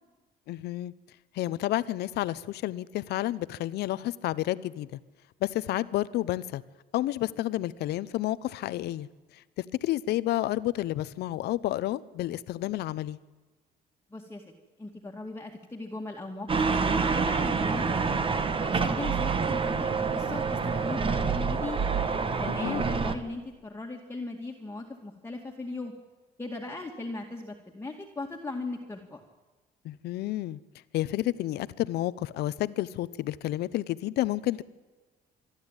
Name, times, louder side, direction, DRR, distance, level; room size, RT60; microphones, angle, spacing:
voice 1, 0.5-0.9 1.3-5.0 5.4-6.6 6.9-9.1 9.6-13.2 22.5-22.9 29.8-30.6 30.9-34.6, left 15 dB, 75° left, 17 dB, 0.8 m, -30 dB
voice 2, 14.1-14.4 14.8-21.8 22.2-25.9 26.4-29.2, left 2 dB, 15° left, 0 dB, 2.0 m, -38 dB
sound 1, 16.5-23.1, right 5 dB, 30° right, 1.5 m, -27 dB
26.5 x 11.5 x 9.0 m, 1.3 s
cardioid pair, 110°, 17 cm